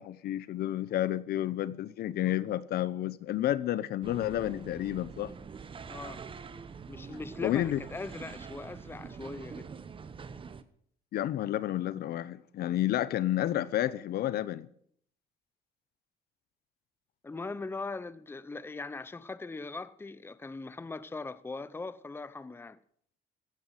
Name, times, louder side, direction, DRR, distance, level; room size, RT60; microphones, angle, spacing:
voice 1, 0.0-5.3 7.4-7.8 11.1-14.7, left 13 dB, 65° left, 0.9 m, -30 dB
sound 1, 4.0-10.6, right 5 dB, 30° right, 1.1 m, -45 dB
voice 2, 5.9-6.2 6.9-9.7 17.2-22.8, left 3 dB, 15° left, 0.8 m, -40 dB
16.0 x 9.5 x 7.6 m
cardioid pair, 110°, 17 cm